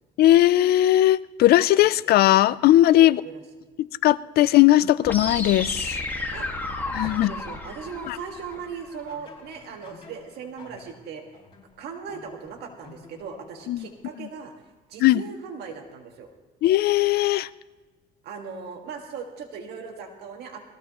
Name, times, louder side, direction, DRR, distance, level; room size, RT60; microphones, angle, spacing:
voice 1, 0.2-3.2 3.8-6.0 6.9-7.3 8.1-8.2 13.7-13.9 15.0-15.2 16.6-17.5, left 14 dB, 70° left, 17 dB, 0.5 m, -18 dB
voice 2, 2.9-3.4 6.3-6.5 7.0-11.2 11.8-14.5 14.9-16.3 18.2-20.6, right 6 dB, 75° right, 3 dB, 1.8 m, -38 dB
sound 1, 5.0-9.0, left 2 dB, 10° left, 1.8 m, -32 dB
sound 2, 8.3-14.2, left 4 dB, 35° left, 4.6 m, -51 dB
21.5 x 15.5 x 3.0 m, 1.3 s
cardioid pair, 110°, 17 cm